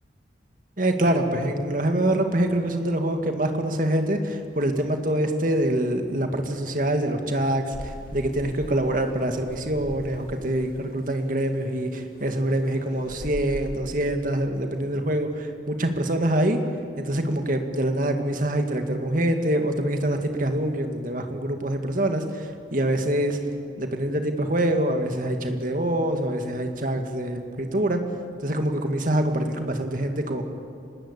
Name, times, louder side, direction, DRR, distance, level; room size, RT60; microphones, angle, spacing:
voice 1, 0.8-16.6 17.0-23.4 23.8-28.0 28.4-30.4, right 1 dB, 45° right, 5 dB, 2.1 m, -25 dB
sound 1, 7.7-13.8, equal, 55° left, 3.1 m, -41 dB
26.0 x 20.0 x 8.4 m, 2.4 s
head